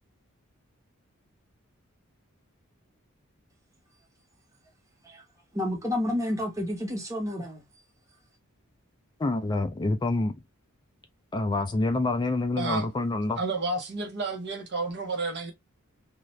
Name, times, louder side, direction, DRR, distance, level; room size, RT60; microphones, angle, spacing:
voice 1, 5.5-7.6, left 1 dB, 15° right, 1.0 m, -30 dB
voice 2, 9.2-10.3 11.3-13.4, left 2 dB, 20° left, 0.3 m, -27 dB
voice 3, 12.6-12.9 13.4-15.5, right 3 dB, 50° right, 0.8 m, -31 dB
2.6 x 2.3 x 3.1 m
head